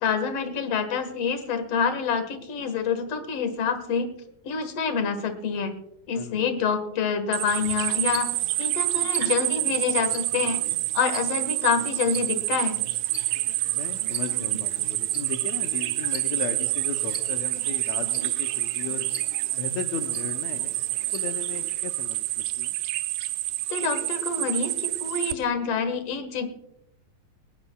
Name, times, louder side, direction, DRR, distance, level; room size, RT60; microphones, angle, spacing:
voice 1, 0.0-4.1 4.4-5.7 6.1-8.3 8.6-10.6 10.9-12.8 23.7-26.5, left 6 dB, 55° left, 8 dB, 2.2 m, -27 dB
sound 1, 7.3-25.3, right 17 dB, 85° right, 2.4 m, -28 dB
sound 2, 7.5-21.8, right 1 dB, 25° right, 1.2 m, -43 dB
voice 2, 13.7-19.1 19.5-20.8 21.1-22.7, left 9 dB, 75° left, 5 dB, 1.7 m, -36 dB
20.0 x 19.5 x 2.3 m, 0.81 s
omnidirectional pair, 3.9 m